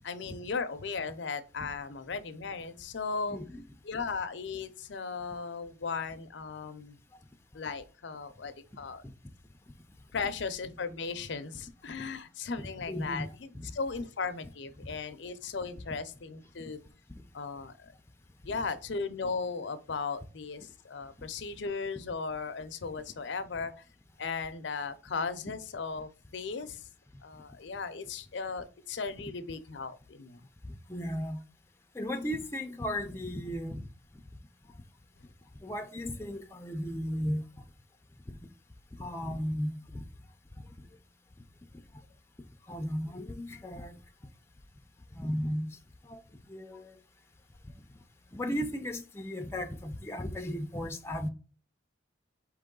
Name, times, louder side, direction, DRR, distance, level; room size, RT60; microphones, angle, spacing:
voice 1, 0.0-3.4 3.8-7.0 7.5-9.0 10.1-16.8 17.3-17.9 18.4-23.7 24.2-26.8 27.2-30.4, left 4 dB, 70° left, 0.6 m, -37 dB
voice 2, 3.3-3.6 12.9-13.7 15.9-16.0 30.6-31.4 31.9-33.9 35.6-37.5 38.3-38.4 38.9-40.1 42.7-43.9 45.1-45.8 46.1-46.2 46.5-47.0 48.3-51.3, equal, 15° left, 0.5 m, -35 dB
4.6 x 3.0 x 3.7 m
head